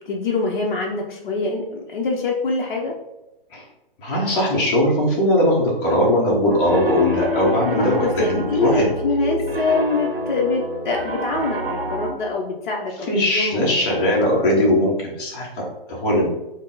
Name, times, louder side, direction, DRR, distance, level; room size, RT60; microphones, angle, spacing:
voice 1, 0.0-2.9 7.8-13.8, left 3 dB, 55° left, -1 dB, 0.7 m, -24 dB
voice 2, 4.0-8.9 13.1-16.3, left 1 dB, 25° left, -4 dB, 0.8 m, -20 dB
Piano, 6.5-12.1, left 1 dB, 85° right, 0.6 m, -27 dB
3.6 x 2.0 x 3.7 m, 0.91 s
figure-of-eight pair, 130°, 29 cm